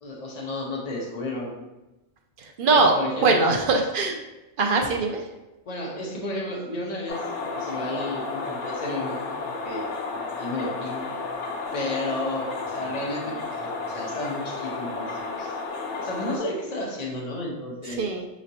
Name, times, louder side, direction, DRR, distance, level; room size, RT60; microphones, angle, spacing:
voice 1, 0.0-1.6 2.7-3.5 5.7-9.9 10.4-11.2 11.7-15.6 16.0-18.1, left 1 dB, 40° left, -2 dB, 0.8 m, -32 dB
voice 2, 2.6-2.9 3.2-4.1 4.6-5.2 18.0-18.3, right 3 dB, 60° right, 2 dB, 0.6 m, -21 dB
sound 1, 7.1-16.4, left 3 dB, 70° left, 1.0 m, -32 dB
4.9 x 3.0 x 2.8 m, 1.0 s
omnidirectional pair, 1.3 m